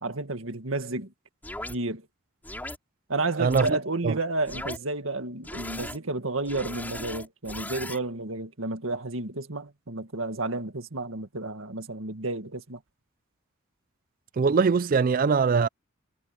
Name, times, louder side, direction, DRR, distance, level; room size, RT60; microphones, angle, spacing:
voice 1, 0.0-1.1 1.7-2.1 3.1-12.8, right 2 dB, 75° right, 1.9 m, -31 dB
sound 1, 1.4-1.8 2.4-2.8 3.5-3.7 4.4-4.8 5.4-6.0 6.4-8.0, left 1 dB, 10° left, 4.3 m, -37 dB
voice 2, 3.4-3.8 4.0-4.2 14.4-15.7, right 5 dB, 40° right, 0.4 m, -22 dB
head